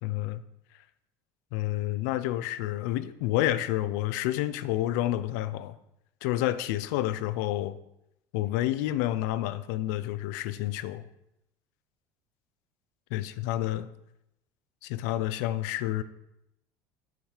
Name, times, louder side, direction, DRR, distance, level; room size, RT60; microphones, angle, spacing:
voice 1, 0.0-0.4 1.5-5.8 6.2-7.8 8.3-11.0 13.1-13.9 14.8-16.0, left 14 dB, 85° left, 14 dB, 0.4 m, -29 dB
5.8 x 4.4 x 4.8 m, 0.84 s
cardioid pair, 165°, 9 cm